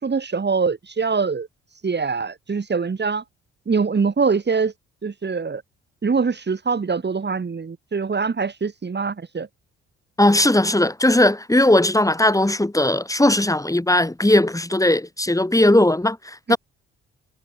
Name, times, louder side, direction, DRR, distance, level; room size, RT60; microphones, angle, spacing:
voice 1, 0.0-1.5 1.8-3.2 3.7-4.7 5.0-5.6 6.0-9.5 16.5-16.6, right 5 dB, 35° right, 3.6 m, -23 dB
voice 2, 10.2-16.6, left 1 dB, 10° left, 6.7 m, -18 dB
hypercardioid pair, 50°, 30 cm